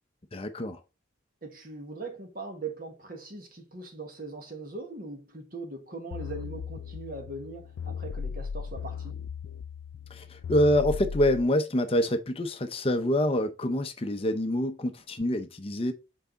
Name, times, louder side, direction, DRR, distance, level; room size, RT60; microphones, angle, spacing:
voice 1, 0.3-0.8 10.1-15.9, left 1 dB, 30° left, 0.6 m, -26 dB
voice 2, 1.4-9.2, right 3 dB, 45° right, 1.5 m, -40 dB
sound 1, 6.1-11.4, left 6 dB, 75° left, 0.3 m, -37 dB
5.8 x 4.7 x 3.9 m
head